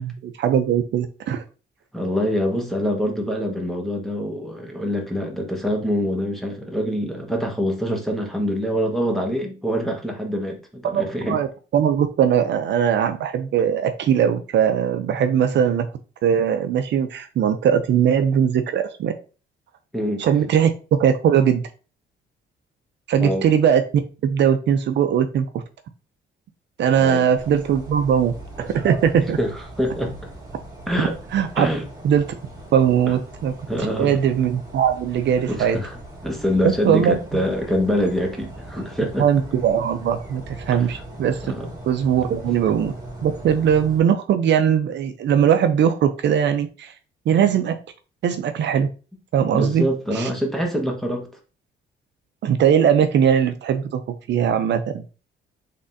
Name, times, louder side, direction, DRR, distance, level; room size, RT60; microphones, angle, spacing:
voice 1, 0.0-1.4 10.8-11.5 11.7-15.9 16.2-19.1 20.2-20.7 21.0-21.6 23.1-23.8 24.2-25.6 26.8-28.3 28.8-29.4 31.3-31.7 32.0-32.2 32.7-33.5 34.0-35.8 36.8-37.1 39.2-41.5 41.9-42.9 43.2-46.9 47.3-47.7 48.2-48.9 49.3-49.9 50.1-50.3 52.4-54.0 54.3-55.0, right 8 dB, 65° right, 0.5 m, -20 dB
voice 2, 1.9-11.4 15.5-15.6 19.9-20.3 23.2-23.5 27.0-27.3 29.4-30.2 30.9-31.1 31.6-31.8 33.1-33.2 33.7-34.2 35.5-39.3 40.7-40.9 41.4-41.7 42.5-42.6 49.5-51.3, equal, ahead, 1.3 m, -25 dB
sound 1, 27.3-44.0, right 1 dB, 20° right, 2.0 m, -39 dB
4.0 x 3.6 x 2.7 m
cardioid pair, 90°, 20 cm